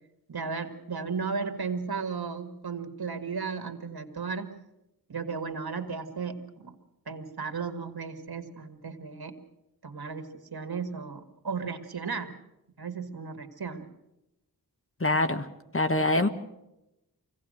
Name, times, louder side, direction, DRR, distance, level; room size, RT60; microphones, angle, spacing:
voice 1, 0.3-4.5 5.1-6.8 7.1-9.3 9.8-12.4 12.8-13.9, right 5 dB, 70° right, 6 dB, 2.1 m, -35 dB
voice 2, 15.0-15.5 15.7-16.3, left 2 dB, 35° left, 8 dB, 1.4 m, -24 dB
24.0 x 17.0 x 6.5 m, 0.89 s
wide cardioid pair, 75°, 38 cm